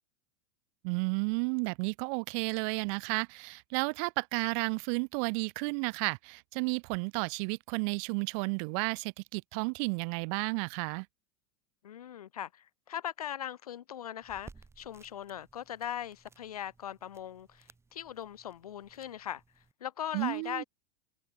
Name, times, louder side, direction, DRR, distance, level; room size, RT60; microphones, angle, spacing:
voice 1, 0.8-11.0 20.1-20.6, right 37 dB, 55° right, 1.7 m, -32 dB
voice 2, 11.8-14.5 14.8-19.4 19.8-20.7, left 10 dB, 80° left, 3.5 m, -40 dB
sound 1, 14.2-19.7, right 4 dB, 15° right, 4.8 m, -58 dB
hypercardioid pair, 95°, 19 cm